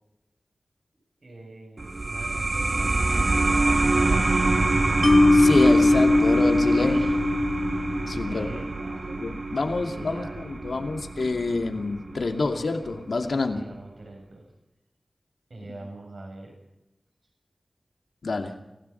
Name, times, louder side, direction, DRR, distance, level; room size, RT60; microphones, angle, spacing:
voice 1, 0.9-4.8 6.8-7.3 8.2-9.0 9.6-10.5 13.5-14.5 15.5-16.5, right 2 dB, 75° right, 1 dB, 7.7 m, -45 dB
sound 1, 1.8-12.9, right 2 dB, 50° right, 1.3 m, -26 dB
Mallet percussion, 5.0-8.3, left 2 dB, 40° left, 1.5 m, -20 dB
voice 2, 5.3-7.0 8.1-8.6 9.1-13.6 18.2-18.5, left 3 dB, 90° left, 4 dB, 2.5 m, -27 dB
28.5 x 16.5 x 5.8 m, 0.94 s
wide cardioid pair, 75°, 0 cm